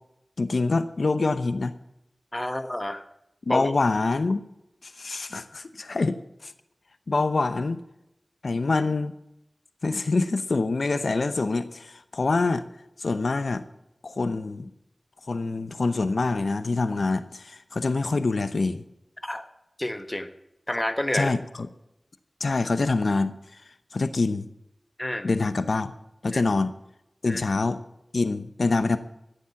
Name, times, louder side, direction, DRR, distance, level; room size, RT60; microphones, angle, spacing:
voice 1, 0.4-1.7 3.5-4.4 4.8-6.5 7.1-7.8 8.4-9.1 9.8-12.7 13.0-13.6 14.0-14.7 15.3-18.8 21.1-21.7 22.4-23.6 23.9-24.5 25.2-25.9 26.2-26.7 27.2-27.8 28.1-29.0, left 3 dB, 85° left, 11 dB, 0.8 m, -25 dB
voice 2, 2.3-3.0 3.5-3.7 19.2-19.4 19.8-20.3 20.7-21.3 25.0-25.3 26.3-26.4 27.2-27.4, left 1 dB, 20° left, 9 dB, 1.2 m, -29 dB
13.5 x 10.5 x 5.9 m, 0.83 s
wide cardioid pair, 70°, 0 cm